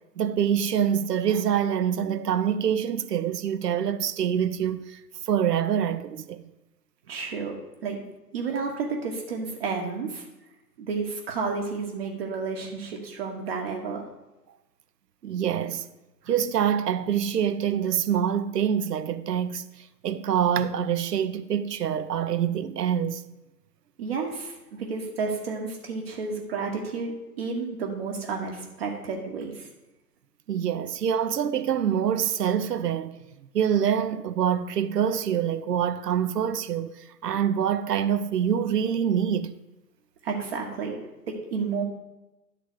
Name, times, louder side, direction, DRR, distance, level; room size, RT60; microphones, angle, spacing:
voice 1, 0.2-5.0 5.3-6.4 15.2-15.9 16.3-23.2 30.5-33.2 33.5-36.9 37.2-39.5, right 8 dB, 70° right, 0.8 m, -25 dB
voice 2, 7.1-7.6 7.8-8.0 8.3-10.3 10.8-14.0 24.0-27.1 27.4-29.7 40.2-41.0 41.3-41.8, right 4 dB, 35° right, 1.2 m, -31 dB
11.5 x 4.0 x 7.7 m
hypercardioid pair, 140°, 50 cm